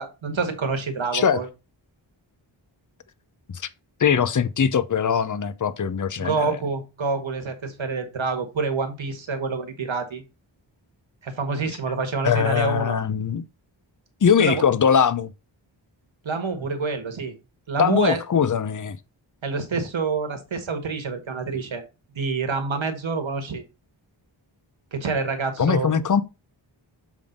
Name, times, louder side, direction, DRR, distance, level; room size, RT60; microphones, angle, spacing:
voice 1, 0.0-1.5 6.2-10.2 11.2-13.0 14.4-14.6 16.2-17.3 17.7-18.2 19.4-21.8 22.1-23.6 24.9-26.0, right 4 dB, 80° right, 1.6 m, -27 dB
voice 2, 4.0-6.6 12.2-13.4 14.2-15.3 17.8-19.0 25.6-26.2, left 7 dB, 40° left, 0.6 m, -21 dB
7.4 x 3.5 x 5.2 m
wide cardioid pair, 90°, 47 cm